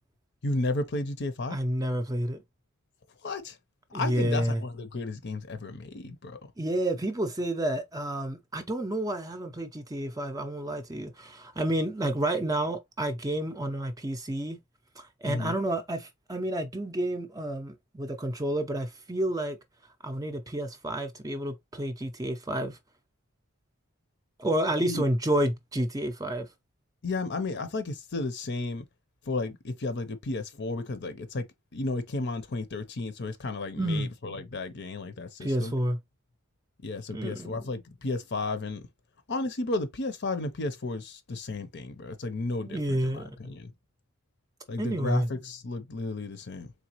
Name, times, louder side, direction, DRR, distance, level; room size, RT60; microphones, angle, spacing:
voice 1, 0.4-1.6 3.2-3.6 3.9-6.4 15.2-15.5 24.8-25.0 27.0-28.9 29.3-31.4 31.7-35.7 36.8-38.8 39.3-43.7 44.7-46.7, left 2 dB, 50° left, 0.7 m, -33 dB
voice 2, 1.5-2.4 3.9-4.6 6.6-14.6 15.0-19.6 20.0-22.8 24.4-26.5 33.8-34.1 35.4-36.0 37.1-37.6 42.6-43.4 44.8-45.3, right 1 dB, 15° right, 0.5 m, -30 dB
4.0 x 3.3 x 2.9 m
head